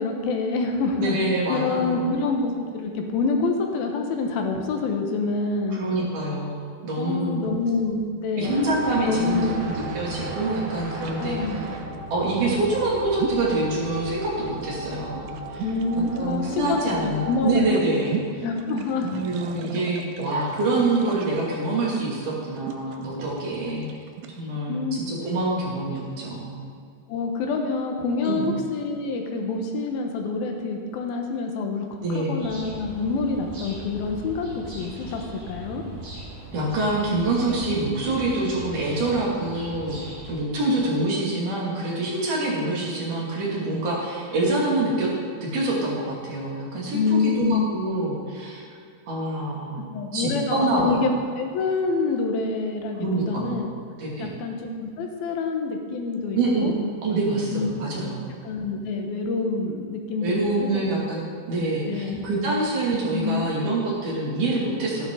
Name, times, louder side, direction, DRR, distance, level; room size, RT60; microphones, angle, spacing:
voice 1, 0.0-1.2 1.5-5.8 7.0-8.6 9.1-9.6 11.2-11.6 15.6-17.0 17.2-18.1 18.4-19.1 24.7-25.0 27.1-31.9 32.1-35.8 46.9-47.7 49.9-51.1 51.4-53.7 54.2-56.7 57.5-57.7 58.0-58.1 58.4-60.9 61.8-62.2 63.1-63.5, left 4 dB, 80° left, 3 dB, 2.9 m, -27 dB
voice 2, 1.0-2.2 5.7-7.5 8.4-11.4 12.1-15.6 16.2-18.4 19.0-23.9 24.4-26.6 28.2-28.5 32.0-32.4 36.5-45.1 45.4-48.6 49.1-49.8 50.1-51.0 53.0-53.6 54.0-54.3 56.4-56.7 57.0-58.3 60.2-61.2 61.5-65.1, right 2 dB, 60° right, -5 dB, 3.9 m, -26 dB
sound 1, 8.4-17.6, right 2 dB, 75° right, 3.9 m, -36 dB
sound 2, 9.7-24.4, right 9 dB, 90° right, 2.6 m, -39 dB
sound 3, 32.4-40.3, right 1 dB, 35° right, 4.3 m, -39 dB
13.5 x 11.0 x 3.8 m, 2.3 s
omnidirectional pair, 4.3 m